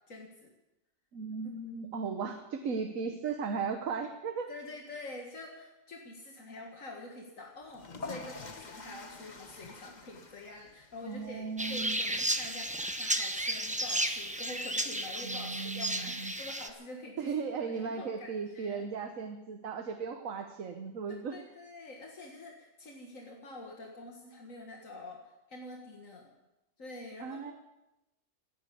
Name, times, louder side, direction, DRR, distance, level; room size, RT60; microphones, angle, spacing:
voice 1, 0.1-0.5 1.7-1.8 4.5-18.8 21.3-26.3 26.8-27.5, left 2 dB, 75° left, 0 dB, 2.2 m, -47 dB
voice 2, 1.1-4.5 11.0-12.1 15.2-16.3 17.2-21.3 27.2-27.5, right 5 dB, 75° right, 6 dB, 1.5 m, -36 dB
sound 1, 7.6-14.5, left 3 dB, 35° left, 1.3 m, -48 dB
sound 2, 11.6-16.7, right 1 dB, 5° right, 0.7 m, -33 dB
16.0 x 9.8 x 8.5 m, 0.96 s
omnidirectional pair, 1.4 m